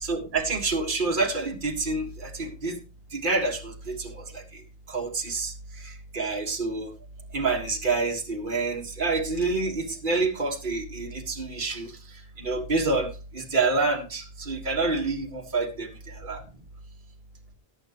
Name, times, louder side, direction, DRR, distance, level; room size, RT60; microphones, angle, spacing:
voice 1, 0.0-2.8 3.1-4.4 4.9-5.5 5.8-6.9 7.3-11.9 12.4-16.4, right 3 dB, 50° right, 2 dB, 1.9 m, -28 dB
18.0 x 8.3 x 3.0 m, 0.30 s
omnidirectional pair, 1.1 m